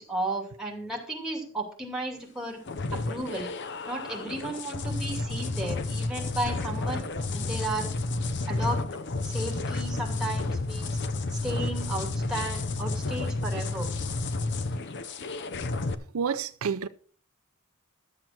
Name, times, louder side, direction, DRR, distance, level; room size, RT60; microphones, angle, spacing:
voice 1, 0.0-2.6 2.9-3.5 3.9-7.9 8.5-8.9 9.2-10.9 11.4-13.9, right 2 dB, ahead, 2.6 m, -34 dB
sound 1, 2.7-15.9, left 3 dB, 55° left, 0.8 m, -31 dB
voice 2, 16.1-16.9, right 6 dB, 85° right, 0.5 m, -29 dB
12.0 x 7.6 x 4.5 m
head